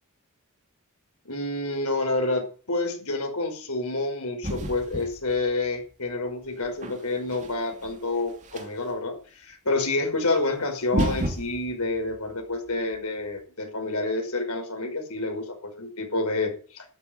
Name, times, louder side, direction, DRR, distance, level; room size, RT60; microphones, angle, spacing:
voice 1, 1.3-16.8, left 2 dB, 85° left, 3 dB, 5.8 m, -28 dB
sound 1, 4.4-5.7 6.4-8.9 10.3-10.4 10.8-13.0, right 1 dB, 35° right, 2.6 m, -32 dB
12.5 x 9.0 x 9.3 m, 0.40 s
head